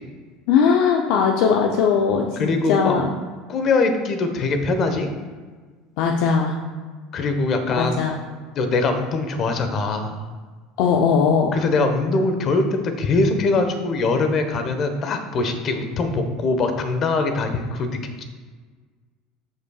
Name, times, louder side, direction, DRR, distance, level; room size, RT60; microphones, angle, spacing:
voice 1, 0.5-3.1 6.0-6.5 7.8-8.2 10.8-11.6, left 6 dB, 70° left, 2 dB, 0.7 m, -19 dB
voice 2, 2.4-3.0 3.5-5.1 7.1-8.0 8.5-10.3 11.5-18.2, left 3 dB, 45° left, 7 dB, 1.2 m, -22 dB
13.5 x 5.7 x 2.4 m, 1.4 s
hypercardioid pair, 80°, 0 cm